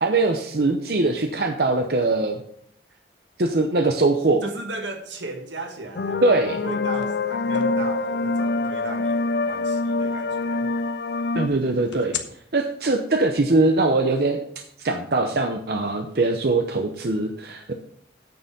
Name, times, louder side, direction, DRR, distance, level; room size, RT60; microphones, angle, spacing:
voice 1, 0.0-2.4 3.4-4.4 6.2-6.6 11.3-12.2 12.5-14.4 14.8-17.7, right 2 dB, 55° right, 5 dB, 0.8 m, -22 dB
voice 2, 4.4-6.2 6.5-9.2 9.4-10.7, right 2 dB, 85° right, 4 dB, 1.8 m, -36 dB
sound 1, 6.0-11.5, left 3 dB, 60° left, 0.4 m, -25 dB
sound 2, 7.0-7.1 7.5-9.3 11.9-12.2, left 2 dB, 85° left, 1.1 m, -30 dB
9.4 x 6.7 x 5.4 m, 0.67 s
head